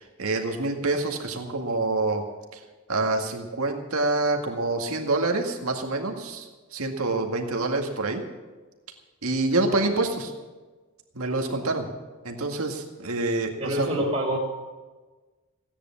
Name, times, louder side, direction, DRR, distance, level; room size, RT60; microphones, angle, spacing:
voice 1, 0.0-2.2 2.5-2.6 2.9-8.2 9.2-10.3 11.1-11.9 12.2-13.9, right 2 dB, 85° right, 3 dB, 2.0 m, -27 dB
voice 2, 13.6-14.4, equal, 30° right, -3 dB, 2.4 m, -26 dB
16.5 x 10.0 x 7.2 m, 1.3 s
head